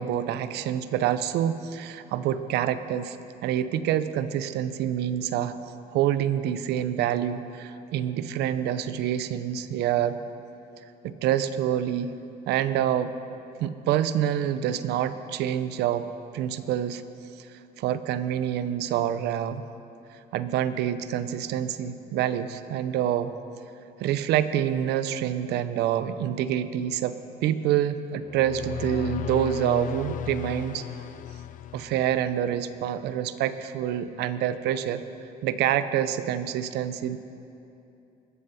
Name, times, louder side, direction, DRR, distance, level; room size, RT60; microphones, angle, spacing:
voice 1, 0.0-3.2 3.4-5.5 5.9-10.2 11.0-12.1 12.5-13.1 13.6-16.1 16.3-17.0 17.4-17.5 17.8-19.6 20.3-23.3 24.0-27.2 27.4-30.8 31.7-35.0 35.4-37.2, right 10 dB, 80° right, 12 dB, 0.6 m, -27 dB
sound 1, 28.2-32.5, left 12 dB, 50° left, 0.5 m, -35 dB
20.5 x 7.7 x 5.7 m, 2.8 s
cardioid pair, 110°, 17 cm